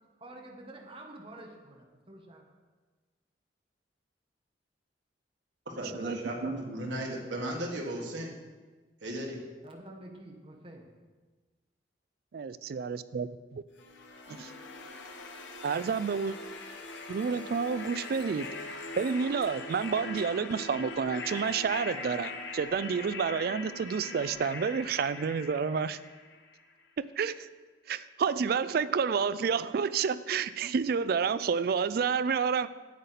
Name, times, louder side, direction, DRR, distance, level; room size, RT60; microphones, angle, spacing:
voice 1, 0.2-2.5 9.6-10.9, right 1 dB, 30° right, 1 dB, 1.2 m, -48 dB
voice 2, 5.6-8.3 9.0-9.4, right 1 dB, 85° right, 0 dB, 1.8 m, -36 dB
voice 3, 12.3-13.6 14.3-14.5 15.6-16.4 17.1-18.5 19.0-26.0 27.0-27.5 27.9-32.7, right 6 dB, 55° right, 15 dB, 0.3 m, -30 dB
sound 1, 13.8-26.7, left 3 dB, 90° left, 1.0 m, -42 dB
9.4 x 8.0 x 4.1 m, 1.3 s
head